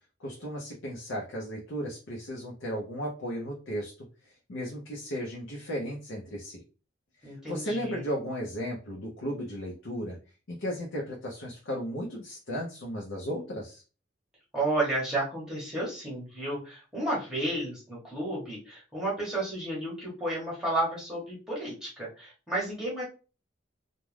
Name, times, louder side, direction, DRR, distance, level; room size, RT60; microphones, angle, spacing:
voice 1, 0.2-3.9 4.2-6.6 7.2-10.2 10.5-13.8, equal, 85° left, -2 dB, 0.7 m, -35 dB
voice 2, 7.2-8.0 14.5-23.0, right 1 dB, 5° right, -6 dB, 0.9 m, -32 dB
2.4 x 2.2 x 3.2 m, 0.35 s
head